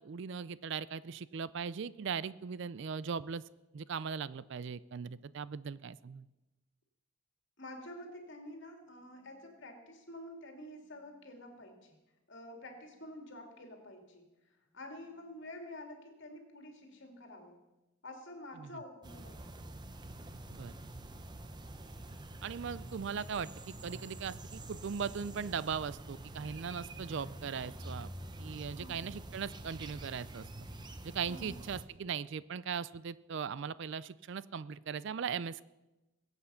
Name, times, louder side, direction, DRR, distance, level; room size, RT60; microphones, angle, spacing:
voice 1, 0.0-3.4 3.7-6.3 18.6-18.7 20.5-20.7 22.4-28.1 28.4-30.5 31.0-35.6, right 6 dB, 55° right, 18 dB, 0.4 m, -39 dB
voice 2, 7.6-11.9 12.3-14.3 14.7-17.6 18.0-19.5 28.8-29.0 31.3-31.5, left 1 dB, 55° left, 3 dB, 2.7 m, -49 dB
sound 1, 19.0-31.8, right 1 dB, 20° right, 0.7 m, -47 dB
22.0 x 8.2 x 5.7 m, 1.0 s
head